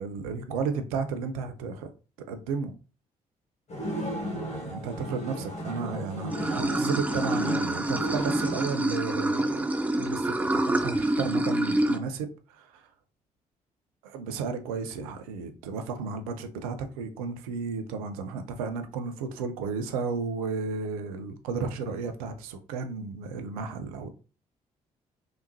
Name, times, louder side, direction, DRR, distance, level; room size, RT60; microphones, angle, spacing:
voice 1, 0.0-1.9 2.3-2.7 4.0-9.7 10.0-12.9 14.0-24.1, right 5 dB, 70° right, 0.5 m, -33 dB
sound 1, 3.7-8.7, right 1 dB, 35° left, 1.4 m, -35 dB
Water / Sink (filling or washing), 6.3-12.0, right 1 dB, 10° right, 0.4 m, -27 dB
3.4 x 2.8 x 2.6 m
figure-of-eight pair, 40°, 19 cm